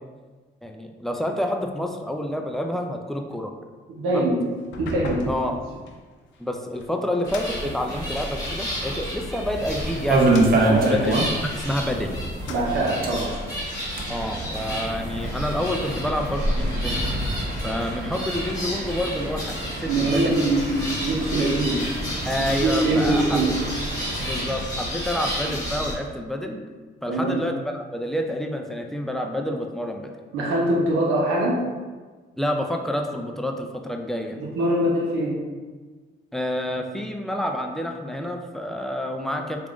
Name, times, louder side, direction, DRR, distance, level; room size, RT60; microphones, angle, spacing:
voice 1, 0.6-3.5 4.1-4.3 5.3-5.6 6.4-11.2 11.4-12.2 14.1-17.0 17.6-20.4 22.2-23.4 24.2-26.6 27.0-30.1 32.4-34.4 36.3-39.7, left 1 dB, ahead, 3 dB, 0.3 m, -28 dB
voice 2, 3.9-4.5 4.8-5.3 10.6-10.9 12.5-13.4 19.9-21.8 22.6-23.6 27.1-27.4 30.3-31.6 34.4-35.4, right 2 dB, 90° right, -3 dB, 0.7 m, -23 dB
sound 1, 4.6-8.6 9.2-11.9 12.3-13.1, left 2 dB, 70° left, 0.6 m, -39 dB
sound 2, 7.3-25.9, equal, 20° left, 1.3 m, -31 dB
sound 3, 9.6-11.6 11.9-12.0 12.3-12.4 12.9-24.6, right 2 dB, 45° right, 0.7 m, -27 dB
3.4 x 2.5 x 3.5 m, 1.4 s
cardioid pair, 90°, 20 cm